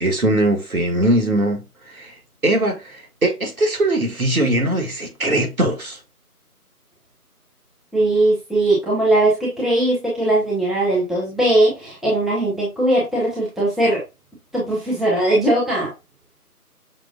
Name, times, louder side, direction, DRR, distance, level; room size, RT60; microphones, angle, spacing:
voice 1, 0.0-2.1 2.4-6.0, right 1 dB, 65° right, 1.4 m, -20 dB
voice 2, 7.9-14.0 14.5-15.9, right 1 dB, ahead, 0.7 m, -19 dB
6.0 x 2.3 x 2.4 m
figure-of-eight pair, 170°, 46 cm